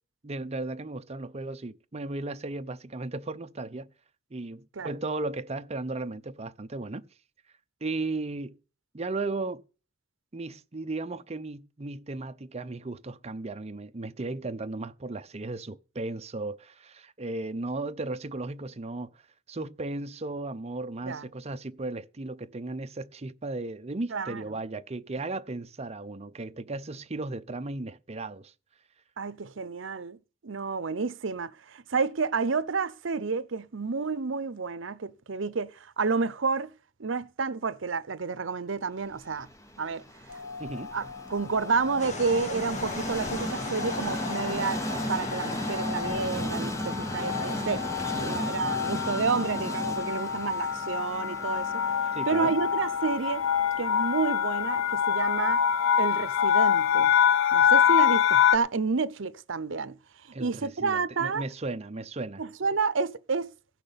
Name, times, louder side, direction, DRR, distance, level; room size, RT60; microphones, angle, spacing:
voice 1, 0.2-3.9 4.3-7.1 7.8-8.6 8.9-9.6 10.3-19.2 19.5-28.5 40.6-40.9 48.1-48.4 52.1-52.5 60.3-62.4, right 2 dB, 35° right, 0.7 m, -35 dB
voice 2, 29.2-30.2 30.4-36.7 37.0-39.5 39.8-40.0 40.9-41.0 41.3-44.8 45.1-47.8 48.2-51.7 52.3-53.4 53.8-55.6 56.0-57.1 57.5-60.0 60.4-61.4 62.4-63.5, right 4 dB, 70° right, 0.7 m, -30 dB
Train, 39.1-57.2, equal, 15° left, 0.9 m, -37 dB
sound 1, 40.4-40.9 41.6-42.0 42.3-42.5 42.8-58.6, left 8 dB, 80° left, 0.6 m, -26 dB
sound 2, 42.0-48.4, left 2 dB, 35° left, 1.3 m, -37 dB
16.5 x 6.0 x 6.9 m
head